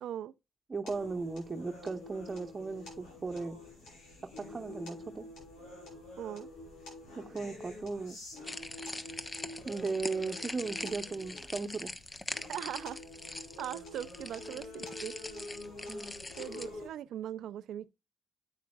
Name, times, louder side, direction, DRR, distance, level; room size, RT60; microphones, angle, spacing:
voice 1, 0.0-0.3 6.2-6.5 12.5-13.0 13.6-15.1 16.4-17.9, right 11 dB, 75° right, 0.5 m, -40 dB
voice 2, 0.7-3.6 4.2-5.2 7.1-8.2 9.6-11.9 15.9-16.1, right 4 dB, 40° right, 1.0 m, -37 dB
sound 1, 0.9-16.9, left 1 dB, 85° left, 5.4 m, -47 dB
sound 2, 8.4-16.7, left 2 dB, 25° left, 1.1 m, -42 dB
9.4 x 8.9 x 2.3 m
supercardioid pair, 50°, 0 cm